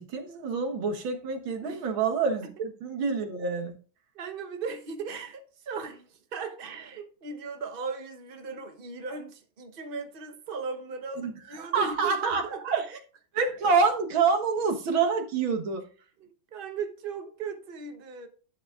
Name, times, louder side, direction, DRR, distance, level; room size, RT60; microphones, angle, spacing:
voice 1, 0.0-3.8 11.2-11.3 11.7-12.9 13.3-15.8, right 5 dB, 90° right, 2.1 m, -27 dB
voice 2, 4.1-12.8 16.2-18.3, right 5 dB, 35° right, 0.9 m, -37 dB
12.0 x 7.2 x 2.4 m
omnidirectional pair, 2.1 m